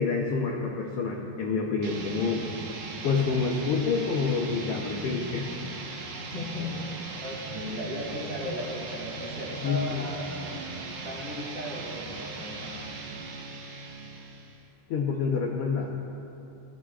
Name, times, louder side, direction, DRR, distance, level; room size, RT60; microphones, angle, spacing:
voice 1, 0.0-2.5 3.0-5.5 9.6-10.0 14.9-15.9, left 5 dB, 70° left, -1 dB, 1.4 m, -27 dB
sound 1, 1.8-14.7, right 3 dB, 80° right, 3.0 m, -39 dB
voice 2, 6.2-10.6 11.0-13.0, equal, 25° right, -5 dB, 2.8 m, -36 dB
21.0 x 13.5 x 2.5 m, 3.0 s
omnidirectional pair, 3.8 m